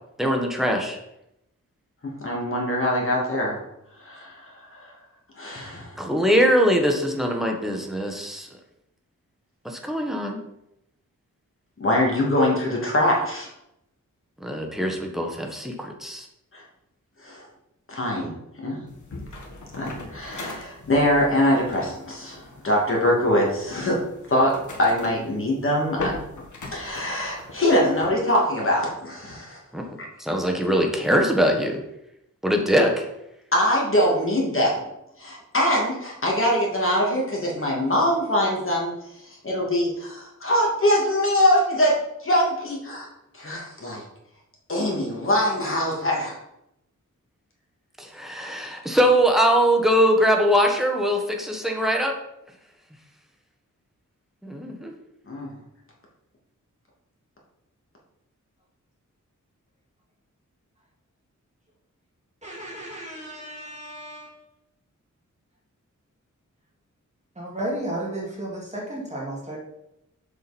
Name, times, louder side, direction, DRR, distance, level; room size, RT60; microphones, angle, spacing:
voice 1, 0.2-1.0 6.0-8.5 9.6-10.4 14.4-16.3 29.7-29.9 30.2-31.8 32.4-33.1 48.0-52.1 54.4-54.9, equal, ahead, 1 dB, 1.5 m, -22 dB
voice 2, 2.2-3.6 4.0-4.9 5.3-5.9 11.8-13.5 16.5-16.6 17.2-17.4 17.9-18.8 19.7-24.0 24.3-24.5 24.8-26.1 26.7-29.6 33.5-34.8 35.2-38.9 39.2-41.9 42.2-43.1 43.3-44.0 44.7-46.4 55.3-55.5, left 1 dB, 45° left, -2 dB, 2.6 m, -23 dB
sound 1, 18.9-28.1, left 2 dB, 70° left, 1.6 m, -39 dB
voice 3, 62.4-64.3 67.4-69.6, right 1 dB, 20° right, -4 dB, 2.4 m, -33 dB
7.6 x 6.3 x 4.4 m, 0.83 s
wide cardioid pair, 110°, 31 cm